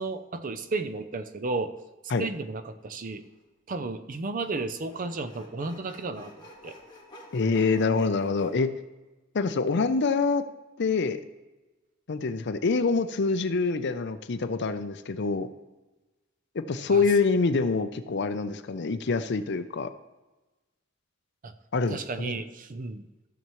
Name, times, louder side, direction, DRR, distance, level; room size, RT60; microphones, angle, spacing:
voice 1, 0.0-1.7 2.2-3.2 3.7-6.3 6.6-6.7 16.9-17.0 21.4-21.5 21.9-23.0, right 3 dB, 40° right, 10 dB, 0.5 m, -33 dB
Sawing, 3.1-3.2 4.3-8.5, left 2 dB, 20° left, 2.2 m, -50 dB
voice 2, 7.3-8.7 9.3-10.4 10.8-11.2 12.1-15.5 16.5-19.9 21.7-22.4, left 4 dB, 60° left, 10 dB, 0.6 m, -26 dB
14.5 x 6.9 x 3.1 m, 1.1 s
head